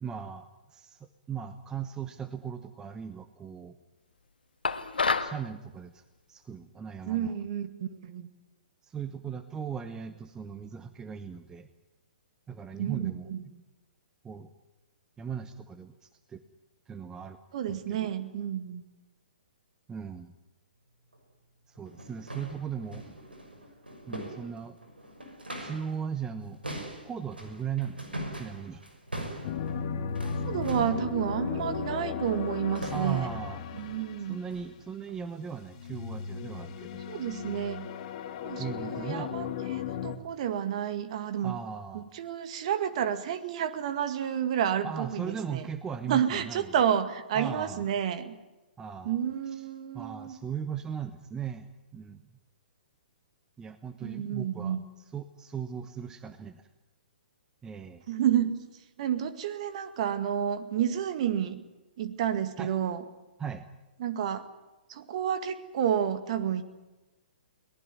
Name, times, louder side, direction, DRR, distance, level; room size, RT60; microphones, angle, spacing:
voice 1, 0.0-3.8 5.2-6.0 6.3-7.3 8.8-11.7 12.5-13.3 14.2-14.5 15.2-16.4 16.9-17.4 17.7-18.1 19.9-20.3 21.7-23.2 24.1-24.8 25.6-26.6 27.0-28.8 32.9-33.6 34.3-37.0 38.6-39.3 41.4-42.1 44.8-46.6 47.3-47.8 48.8-49.2 49.5-49.6 49.9-51.7 51.9-52.3 53.6-56.6 57.6-58.0 62.6-62.7 63.4-63.6, right 7 dB, 10° right, 11 dB, 1.0 m, -38 dB
sound 1, 4.6-5.4, left 4 dB, 70° left, 1.8 m, -27 dB
voice 2, 7.1-8.3 12.8-13.4 17.5-18.8 30.5-33.3 33.8-34.4 37.1-37.9 38.4-39.5 39.7-41.6 41.9-45.7 46.0-48.4 49.0-50.4 54.0-54.8 58.1-58.5 59.0-61.6 62.0-63.0 64.0-64.5 64.9-66.6, right 9 dB, 40° right, 11 dB, 2.1 m, -30 dB
sound 2, 21.1-21.2 21.7-26.0 26.2-31.1 32.2-32.5 32.7-33.4 33.8-34.1 34.5-34.7 35.1-35.3 35.8-36.0 36.5-36.6 37.2-37.3, right 1 dB, 80° right, 6.2 m, -42 dB
sound 3, 29.4-34.7 35.7-40.2, left 7 dB, 40° left, 1.9 m, -36 dB
23.0 x 19.0 x 9.7 m, 1.1 s
figure-of-eight pair, 120°, 5 cm